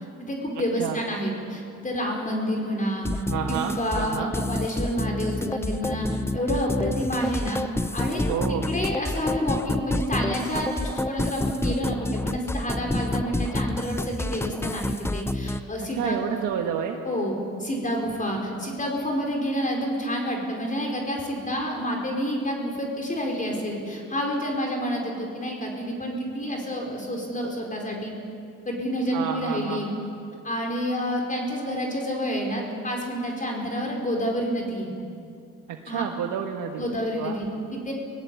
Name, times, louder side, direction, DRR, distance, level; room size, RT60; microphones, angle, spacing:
voice 1, 0.2-3.1 3.5-7.6 7.9-16.4 17.0-28.1 28.6-29.9 30.4-34.9 35.9-36.0 36.7-37.9, equal, 25° left, 0 dB, 4.8 m, -29 dB
sound 1, 3.0-15.6, left 2 dB, 10° left, 0.6 m, -28 dB
voice 2, 3.3-4.3 8.3-8.7 16.0-17.0 29.1-30.1 35.8-36.8 37.2-37.4, right 8 dB, 85° right, 3 dB, 1.4 m, -30 dB
23.0 x 18.5 x 8.5 m, 2.6 s
cardioid pair, 90°, 30 cm